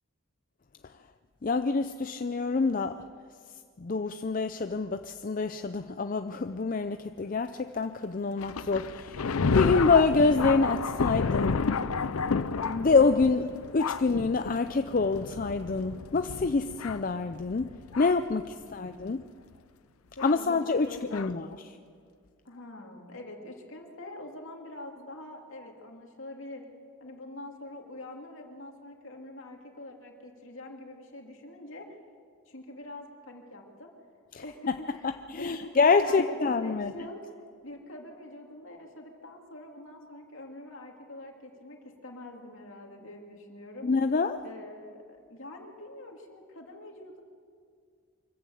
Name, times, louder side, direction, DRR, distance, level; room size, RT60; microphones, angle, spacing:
voice 1, 1.4-3.1 3.8-9.3 9.5-11.6 12.7-17.7 18.0-19.2 20.2-21.5 34.3-34.8 35.0-36.9 43.8-44.4, left 4 dB, 40° left, 9 dB, 0.5 m, -26 dB
Thunder, 8.4-18.3 19.1-19.2 20.2-20.4 21.1-21.3, left 4 dB, 90° left, 0.6 m, -31 dB
voice 2, 18.5-19.0 20.1-20.6 20.9-21.6 22.4-26.6 27.0-32.0 32.5-33.9 34.4-43.9 44.4-47.2, left 1 dB, 65° left, 1 dB, 2.8 m, -45 dB
24.5 x 15.0 x 7.8 m, 2.2 s
head